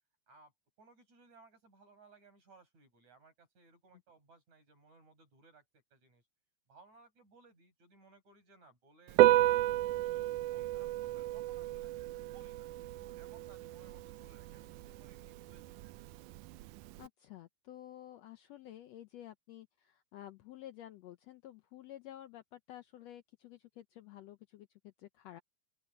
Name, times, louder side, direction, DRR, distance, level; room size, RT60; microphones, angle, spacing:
voice 1, 0.8-6.2 6.7-9.2 9.5-11.9 12.3-15.8, right 3 dB, 70° right, 8.6 m, -62 dB
Piano, 9.1-17.1, right 16 dB, 85° right, 2.0 m, -32 dB
voice 2, 17.0-25.4, left 12 dB, 70° left, 1.8 m, -51 dB
open air
omnidirectional pair, 3.4 m